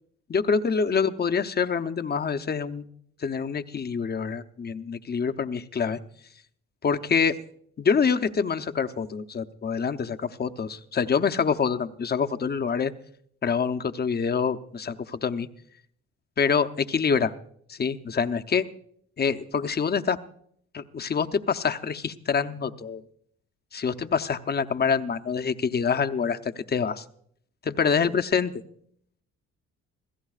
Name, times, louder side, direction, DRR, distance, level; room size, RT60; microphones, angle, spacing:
voice 1, 0.3-2.8 3.2-6.0 6.8-7.4 7.8-12.9 13.4-15.5 16.4-17.3 17.7-18.7 19.2-20.2 20.7-23.0 23.7-27.0 27.6-28.5, left 6 dB, 35° left, 8 dB, 0.8 m, -26 dB
26.5 x 16.5 x 2.4 m, 0.65 s
cardioid pair, 90°, 30 cm